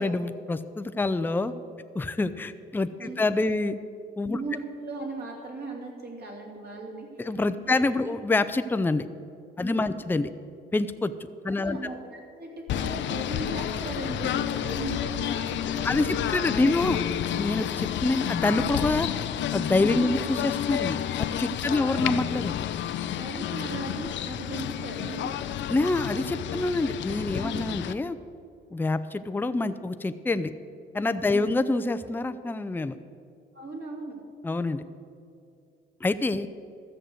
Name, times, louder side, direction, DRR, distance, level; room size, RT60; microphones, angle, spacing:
voice 1, 0.0-1.5 1.9-3.8 4.2-4.4 7.2-9.1 9.6-10.3 10.7-11.1 11.4-11.8 15.8-17.0 17.4-19.1 19.5-22.6 25.7-28.2 28.7-30.5 30.9-33.0 34.4-34.8 36.0-36.5, left 2 dB, 10° left, 11 dB, 0.5 m, -26 dB
voice 2, 4.3-7.8 9.6-10.0 11.6-16.8 19.8-20.2 21.6-22.1 23.1-25.4 27.4-27.6 31.2-31.6 33.5-34.2, right 2 dB, 50° right, -1 dB, 3.1 m, -38 dB
Singing / Bird, 12.7-27.9, left 10 dB, 65° left, 0.6 m, -30 dB
13.5 x 6.5 x 7.7 m, 2.4 s
cardioid pair, 90°, 20 cm